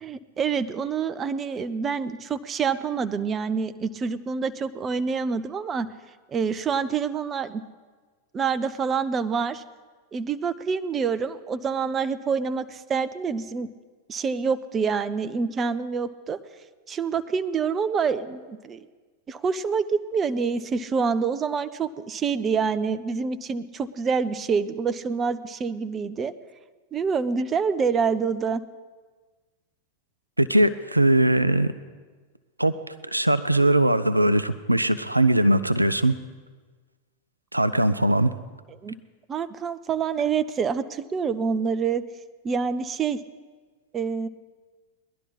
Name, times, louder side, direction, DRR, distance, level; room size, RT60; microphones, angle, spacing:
voice 1, 0.0-5.9 6.3-7.6 8.3-9.6 10.1-13.7 14.1-16.4 16.9-18.9 19.3-26.3 26.9-28.6 38.8-39.0 39.3-42.0 42.4-43.2 43.9-44.3, right 5 dB, 25° right, 13 dB, 0.6 m, -26 dB
voice 2, 30.4-31.7 32.6-32.7 33.1-36.1 37.5-38.3, right 1 dB, 85° right, 13 dB, 0.5 m, -20 dB
20.0 x 11.5 x 4.1 m, 1.4 s
figure-of-eight pair, 90°, 0 cm